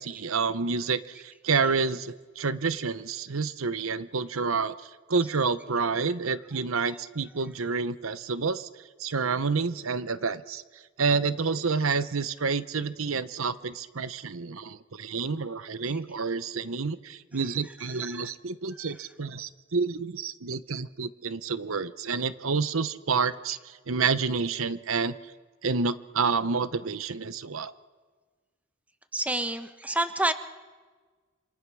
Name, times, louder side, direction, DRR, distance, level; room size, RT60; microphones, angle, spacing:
voice 1, 0.0-4.7 5.1-8.7 9.0-10.6 11.0-25.1 25.6-27.7, right 4 dB, 80° right, 14 dB, 0.9 m, -29 dB
voice 2, 18.0-18.3 29.1-30.3, right 1 dB, 5° right, 10 dB, 1.0 m, -28 dB
27.5 x 26.5 x 6.2 m, 1.4 s
head